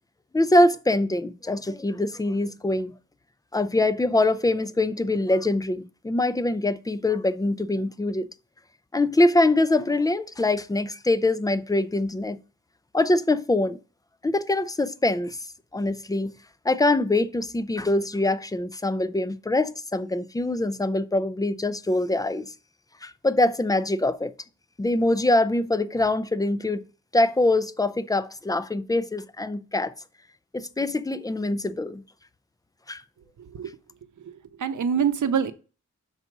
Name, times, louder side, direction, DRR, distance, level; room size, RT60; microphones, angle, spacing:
voice 1, 0.3-2.9 3.5-8.3 8.9-12.4 12.9-13.8 14.2-15.4 15.7-16.3 16.6-22.5 23.0-24.3 24.8-26.9 27.1-29.9 30.5-32.0 32.9-33.0, left 2 dB, 10° left, 0.4 m, -24 dB
voice 2, 34.2-35.5, right 7 dB, 80° right, 0.7 m, -25 dB
5.8 x 4.1 x 5.9 m
wide cardioid pair, 70°, 30 cm